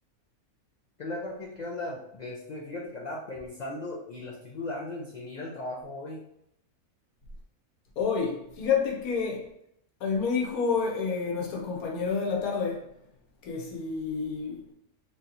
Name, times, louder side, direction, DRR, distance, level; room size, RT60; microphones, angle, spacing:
voice 1, 1.0-6.2, left 2 dB, 55° left, 0.4 m, -37 dB
voice 2, 8.0-9.5 10.0-12.9 13.4-14.6, left 5 dB, 80° left, 1.4 m, -29 dB
3.3 x 2.9 x 3.9 m
omnidirectional pair, 1.5 m